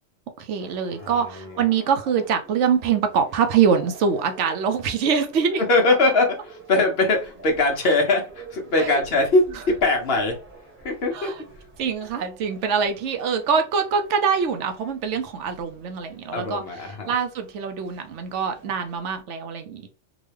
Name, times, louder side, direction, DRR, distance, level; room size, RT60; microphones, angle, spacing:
voice 1, 0.4-5.6 8.8-9.0 11.1-11.3 11.8-16.6 17.1-19.9, right 6 dB, 70° right, 0.9 m, -24 dB
sound 1, 0.6-19.2, right 3 dB, 45° right, 1.0 m, -47 dB
voice 2, 1.0-1.6 5.7-10.4 10.8-11.3 16.3-17.1, left 2 dB, 55° left, 1.0 m, -22 dB
3.8 x 2.2 x 3.2 m
omnidirectional pair, 1.3 m